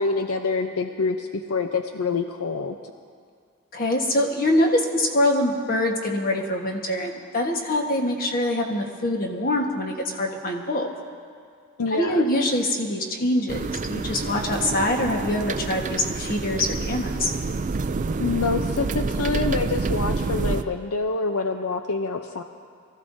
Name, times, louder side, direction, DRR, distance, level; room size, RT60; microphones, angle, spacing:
voice 1, 0.0-2.8 11.8-12.3 18.2-22.4, left 4 dB, 75° left, 6 dB, 0.6 m, -26 dB
voice 2, 3.7-10.9 11.9-17.3, left 1 dB, 40° left, 1 dB, 1.4 m, -24 dB
sound 1, 13.5-20.6, right 3 dB, 35° right, 0.4 m, -28 dB
23.0 x 15.0 x 2.7 m, 2.1 s
head